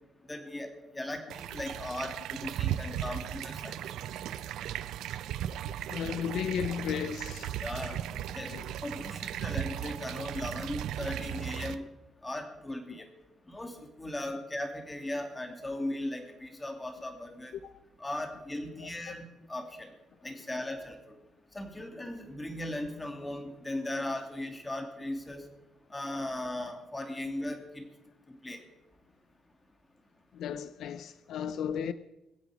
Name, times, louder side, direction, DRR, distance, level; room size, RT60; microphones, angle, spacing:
voice 1, 0.3-0.7 0.9-3.8 7.6-8.0 8.3-8.5 8.8-11.9 12.2-13.1 13.5-17.5 18.0-19.9 20.2-21.0 21.5-25.4 25.9-27.9 28.4-28.6, left 1 dB, 15° left, 2.8 m, -37 dB
sound 1, 1.3-11.8, right 11 dB, 85° right, 0.6 m, -36 dB
voice 2, 5.9-8.0 8.5-8.7 12.9-13.0 17.6-17.8 18.7-19.2 27.3-27.4 30.3-31.9, left 8 dB, 75° left, 0.5 m, -35 dB
22.5 x 8.2 x 5.1 m
cardioid pair, 90°, 0 cm